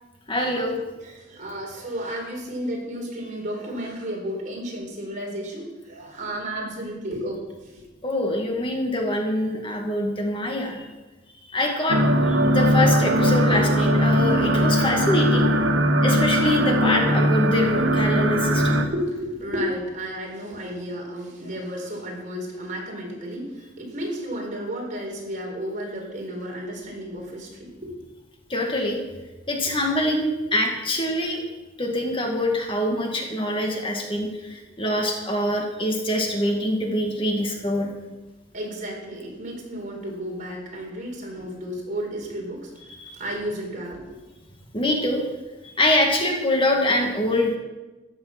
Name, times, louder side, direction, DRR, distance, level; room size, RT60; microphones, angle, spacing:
voice 1, 0.3-0.8 8.0-10.9 11.5-12.0 12.3-15.5 16.0-18.8 28.5-29.0 29.5-31.4 31.8-37.9 43.0-43.1 44.7-45.2 45.8-47.6, left 1 dB, 30° left, 1 dB, 2.0 m, -24 dB
voice 2, 1.0-7.9 18.7-28.0 38.5-42.7 43.1-44.2, equal, 45° right, 0 dB, 4.1 m, -33 dB
sound 1, 11.9-18.9, equal, 90° right, 1.3 m, -20 dB
14.5 x 10.5 x 6.0 m, 1.1 s
head